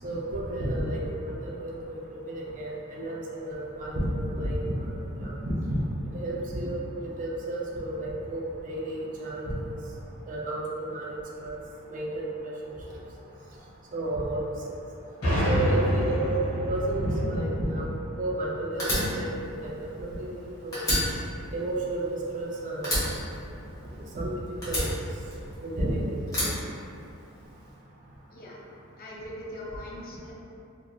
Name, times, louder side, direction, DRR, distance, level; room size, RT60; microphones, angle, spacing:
voice 1, 0.0-5.8 6.1-6.8 7.2-9.8 10.3-11.6 11.9-13.0 13.9-14.4 14.7-14.8 15.4-16.4 16.7-18.9 19.2-19.7 20.0-20.3 20.6-20.8 21.5-22.1 22.3-23.2 24.1-24.3 24.7-25.1 25.6-26.3, right 1 dB, 35° right, -4 dB, 0.4 m, -31 dB
sound 1, 15.2-18.9, equal, 80° left, 1.3 m, -28 dB
Fire, 18.8-20.4 20.7-22.5 22.8-24.2 24.6-25.8 26.3-27.4, equal, 15° left, 0.9 m, -30 dB
voice 2, 29.0-30.3, left 1 dB, 45° left, -5 dB, 0.5 m, -41 dB
2.9 x 2.4 x 2.2 m, 2.6 s
head